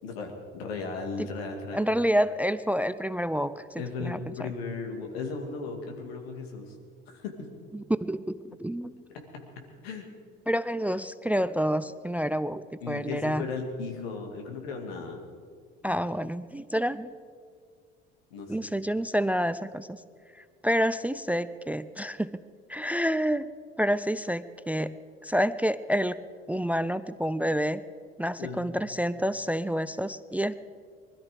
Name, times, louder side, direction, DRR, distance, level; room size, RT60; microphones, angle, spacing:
voice 1, 0.0-1.8 3.8-6.7 7.1-7.5 9.3-9.4 9.8-10.1 12.8-15.2 18.3-18.5 28.4-28.6, left 4 dB, 80° left, 3 dB, 2.3 m, -36 dB
voice 2, 1.7-4.5 7.7-9.1 10.5-13.5 15.8-17.2 18.5-20.0 20.4-22.4 22.7-23.5 23.8-25.0 25.2-27.8 28.2-30.6, equal, 5° right, 15 dB, 0.4 m, -28 dB
20.5 x 13.0 x 5.1 m, 2.1 s
hypercardioid pair, 65°, 30 cm